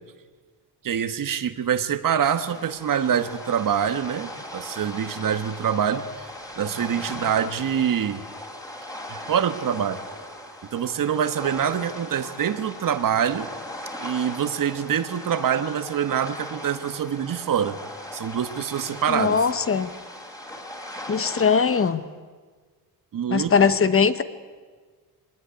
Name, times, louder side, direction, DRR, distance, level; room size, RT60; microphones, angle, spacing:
voice 1, 0.8-6.0 6.6-8.2 9.1-10.0 10.7-13.5 14.0-17.8 18.1-19.4 23.1-23.7, right 8 dB, 60° right, 11 dB, 1.4 m, -25 dB
sound 1, 2.2-21.9, left 1 dB, 10° left, 3.3 m, -39 dB
voice 2, 19.1-19.9 21.1-22.0 23.3-24.2, left 6 dB, 35° left, 13 dB, 1.0 m, -20 dB
22.0 x 19.0 x 9.7 m, 1.5 s
wide cardioid pair, 135°, 38 cm